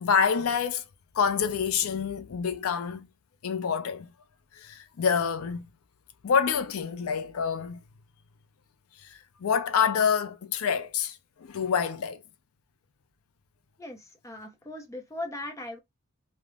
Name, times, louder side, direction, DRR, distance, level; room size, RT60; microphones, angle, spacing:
voice 1, 0.0-0.8 1.1-3.1 3.4-4.1 4.5-5.7 6.2-7.8 9.0-12.2, left 6 dB, 85° left, 0.5 m, -27 dB
voice 2, 13.8-15.8, left 1 dB, 15° left, 0.6 m, -39 dB
3.4 x 2.0 x 2.3 m
head